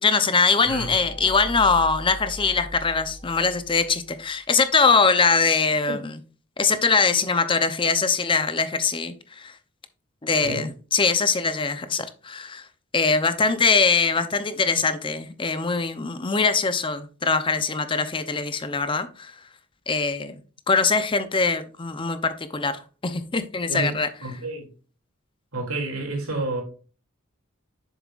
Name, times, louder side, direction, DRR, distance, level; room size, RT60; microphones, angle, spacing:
voice 1, 0.0-6.1 6.6-9.5 10.2-12.6 12.9-19.3 19.9-20.4 20.7-24.1, left 4 dB, 25° left, 0.6 m, -22 dB
sound 1, 0.6-4.3, equal, ahead, 2.0 m, -39 dB
voice 2, 23.7-24.7 25.5-26.6, right 2 dB, 85° right, 2.7 m, -30 dB
7.3 x 7.1 x 2.4 m
head